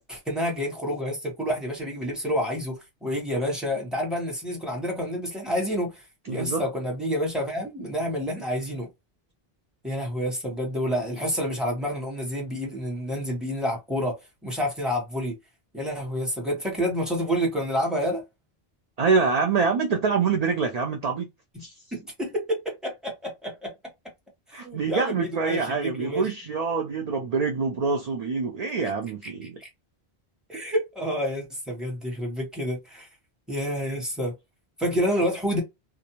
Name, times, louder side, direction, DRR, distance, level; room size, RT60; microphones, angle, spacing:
voice 1, 0.1-8.9 9.8-14.2 14.4-15.3 15.7-18.2 21.9-23.7 24.5-26.3 29.2-29.7 30.5-33.1 33.5-34.3 34.8-35.6, equal, ahead, 1.0 m, -29 dB
voice 2, 6.3-6.7 19.0-21.3 21.6-21.7 24.5-29.6, right 4 dB, 55° right, 0.5 m, -25 dB
2.5 x 2.0 x 2.9 m
omnidirectional pair, 1.1 m